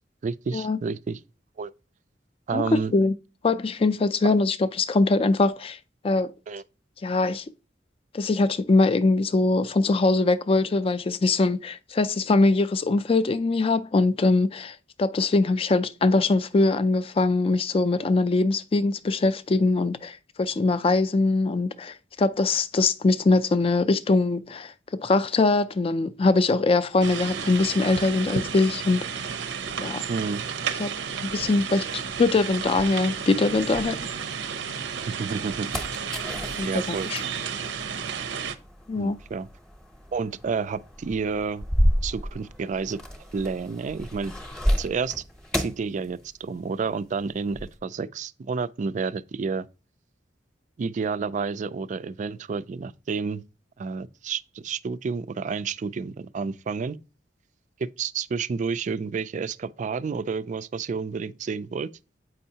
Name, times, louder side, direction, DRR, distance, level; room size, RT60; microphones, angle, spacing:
voice 1, 0.2-1.2 1.6-1.7 2.5-2.9 4.2-4.3 6.5-6.6 30.1-30.4 35.1-35.7 36.6-37.1 38.9-39.5 40.1-41.6 42.0-43.0 43.3-44.3 44.8-45.2 45.6-49.7 50.8-53.4 53.8-57.0 58.0-61.9, right 5 dB, 45° right, 0.3 m, -30 dB
voice 2, 2.5-3.1 3.4-5.8 6.0-6.3 7.0-7.4 8.1-29.2 29.8-30.0 30.8-30.9 31.2-31.9 32.2-34.0 36.6-37.2 38.9-39.2, left 3 dB, 30° left, 0.4 m, -22 dB
sound 1, 27.0-38.6, right 6 dB, 85° right, 0.7 m, -32 dB
sound 2, 31.7-34.5 34.9-46.7 46.9-47.8, equal, 5° left, 0.8 m, -31 dB
7.8 x 5.4 x 2.8 m
head